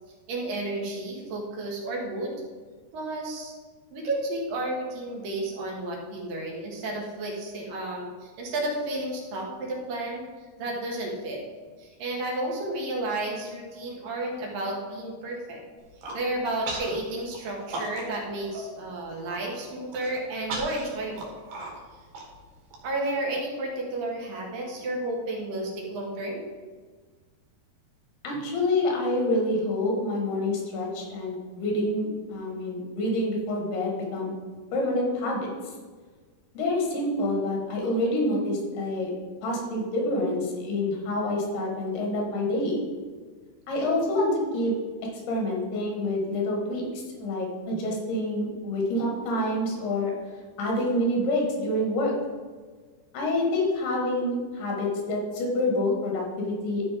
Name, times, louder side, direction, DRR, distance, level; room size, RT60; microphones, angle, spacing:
voice 1, 0.3-2.4 2.9-3.5 3.9-10.2 10.6-11.4 11.8-15.6 16.1-21.3 22.8-26.4, right 1 dB, 65° right, -1 dB, 3.2 m, -32 dB
Human voice, 15.8-16.2 16.7-17.0 17.3-18.2 18.6-18.7 19.0-19.4 19.9-22.8, right 2 dB, 80° right, 3.8 m, -36 dB
voice 2, 28.2-34.3 34.7-35.5 36.5-39.1 39.4-42.8 43.7-44.7 45.3-46.8 47.2-50.1 50.6-52.1 53.1-56.8, left 1 dB, 75° left, -1 dB, 4.0 m, -27 dB
13.0 x 5.6 x 5.2 m, 1.4 s
omnidirectional pair, 4.6 m